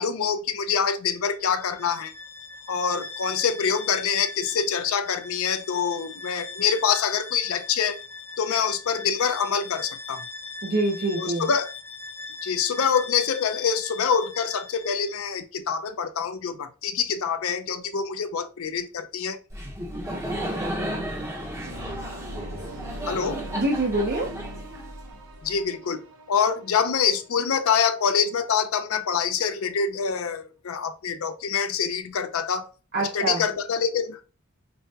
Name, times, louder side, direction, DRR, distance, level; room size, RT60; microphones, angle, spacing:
voice 1, 0.0-2.1 2.7-8.0 8.4-10.2 11.1-11.7 12.4-19.4 23.1-23.4 25.4-26.0 26.3-32.7 33.0-34.3, left 6 dB, 65° left, 0.5 m, -25 dB
Bowed string instrument, 1.3-15.2, left 4 dB, 10° left, 0.4 m, -40 dB
voice 2, 10.6-11.5 23.5-24.3 32.9-33.4, right 2 dB, 45° right, 0.6 m, -25 dB
Laughter, 19.5-25.3, equal, 15° right, 0.8 m, -33 dB
sound 1, 21.6-28.5, right 2 dB, 85° right, 0.7 m, -43 dB
5.4 x 2.2 x 2.7 m
head